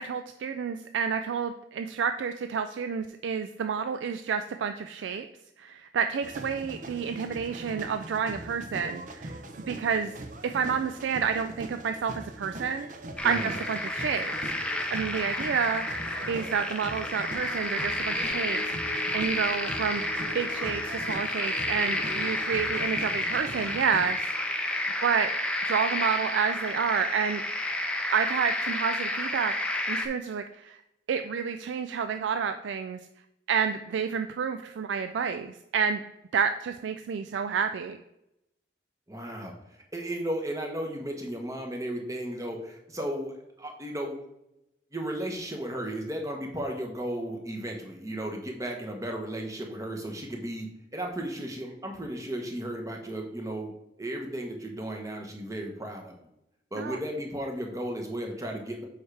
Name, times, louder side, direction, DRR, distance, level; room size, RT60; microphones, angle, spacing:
voice 1, 0.0-5.3 5.6-10.1 10.4-12.9 13.2-14.3 14.6-15.8 16.3-18.7 19.1-20.0 20.3-24.2 25.0-25.3 25.7-27.4 28.1-29.5 29.9-30.8 31.1-33.0 33.5-36.0 36.3-38.0 56.8-57.0, right 6 dB, 85° right, 8 dB, 0.3 m, -29 dB
sound 1, 6.2-24.1, right 1 dB, 45° right, 0.6 m, -42 dB
sound 2, 13.2-30.1, left 1 dB, 5° left, 0.5 m, -31 dB
sound 3, 17.5-28.1 28.4-28.6, left 2 dB, 60° left, 0.7 m, -47 dB
voice 2, 39.1-44.2 44.9-53.7 54.0-56.1 56.7-58.9, right 1 dB, 20° right, 2 dB, 1.0 m, -35 dB
7.1 x 4.9 x 3.3 m, 0.86 s
head